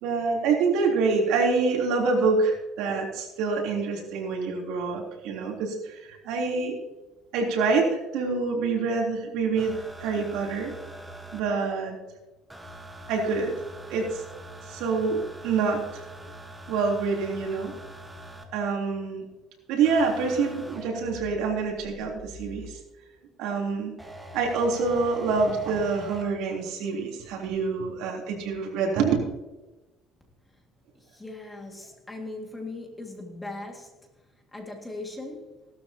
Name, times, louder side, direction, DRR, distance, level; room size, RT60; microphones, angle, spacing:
voice 1, 0.0-6.7 7.3-10.7 11.3-12.0 13.1-13.5 13.9-14.2 14.7-16.0 16.7-17.7 18.5-19.2 19.7-22.8 23.4-23.9 24.3-29.2, right 4 dB, 80° right, 0 dB, 3.4 m, -26 dB
sound 1, 9.6-11.4 12.5-18.5 19.8-22.8 24.0-26.2 27.4-27.5, right 1 dB, 5° right, 1.3 m, -44 dB
voice 2, 31.0-33.9 34.5-35.5, left 2 dB, 10° left, 1 dB, 2.1 m, -39 dB
16.5 x 12.5 x 2.9 m, 1.1 s
cardioid pair, 160°, 0 cm